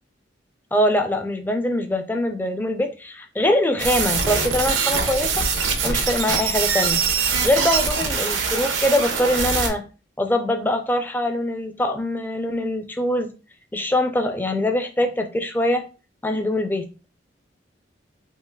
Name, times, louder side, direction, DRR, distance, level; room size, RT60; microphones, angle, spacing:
voice 1, 0.7-5.5 5.8-7.0 7.4-9.8 10.2-13.3 13.7-15.8 16.2-16.9, left 1 dB, 10° left, 5 dB, 0.4 m, -23 dB
sound 1, 3.8-9.7, right 5 dB, 85° right, 0.7 m, -23 dB
3.8 x 2.8 x 2.2 m, 0.33 s
head